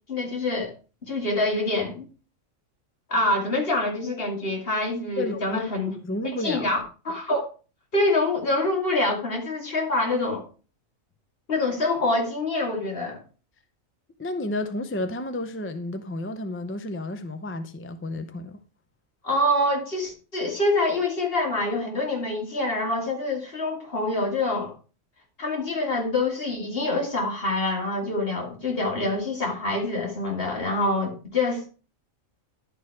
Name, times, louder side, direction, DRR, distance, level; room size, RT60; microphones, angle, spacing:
voice 1, 0.1-0.7 1.1-2.1 3.1-5.9 6.4-7.5 7.9-10.4 11.5-13.2 19.2-24.7 25.4-31.7, left 2 dB, 45° left, 2.3 m, -26 dB
voice 2, 5.2-5.6 6.0-6.7 14.2-18.6, left 1 dB, 20° left, 0.3 m, -31 dB
11.0 x 4.6 x 4.6 m
omnidirectional pair, 1.4 m